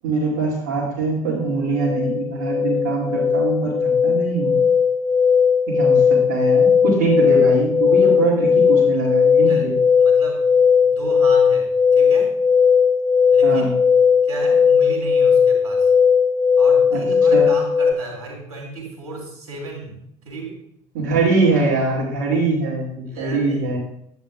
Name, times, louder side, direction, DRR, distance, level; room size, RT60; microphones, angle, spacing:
voice 1, 0.0-4.6 5.7-9.7 13.4-13.7 16.9-17.0 17.3-17.5 20.9-23.8, right 3 dB, 55° right, -7 dB, 2.6 m, -22 dB
sound 1, 1.4-17.9, left 6 dB, 15° left, 0.4 m, -17 dB
voice 2, 10.0-10.5 10.8-12.3 13.3-13.7 14.2-15.9 16.6-20.0 20.2-20.6 21.2-21.3 23.1-23.7, right 3 dB, 80° right, -1 dB, 2.8 m, -34 dB
9.9 x 8.8 x 2.5 m, 0.74 s
figure-of-eight pair, 65°, 19 cm